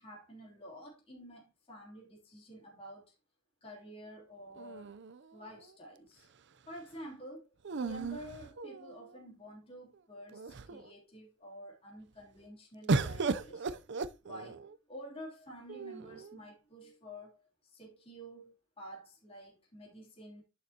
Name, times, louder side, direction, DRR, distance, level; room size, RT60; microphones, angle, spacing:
voice 1, 0.0-3.1 3.6-4.9 5.3-6.3 6.7-7.5 7.7-14.6 14.9-20.4, equal, 25° left, 3.1 m, -50 dB
sound 1, 4.6-5.7 7.6-9.2 9.9-10.0 10.3-10.9 12.9-14.8 15.7-16.4, right 4 dB, 55° right, 0.6 m, -36 dB
11.0 x 6.6 x 2.9 m
head